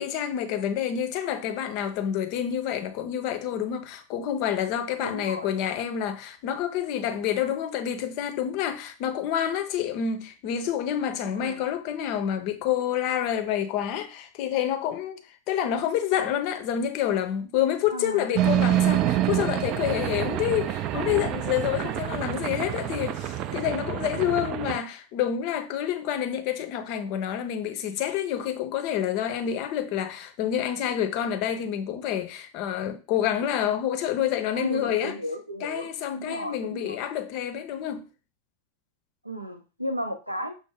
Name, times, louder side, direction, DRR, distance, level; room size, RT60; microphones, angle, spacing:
voice 1, 0.0-15.2 15.5-35.1 35.6-38.0, left 10 dB, 45° left, 0.6 m, -28 dB
voice 2, 5.0-5.5 11.3-11.6 17.9-18.3 24.1-24.5 34.5-37.0 39.2-40.5, equal, 90° right, 0.6 m, -35 dB
sound 1, 18.4-24.8, right 12 dB, 35° right, 0.3 m, -27 dB
5.9 x 2.0 x 3.4 m
figure-of-eight pair, 90°, 0 cm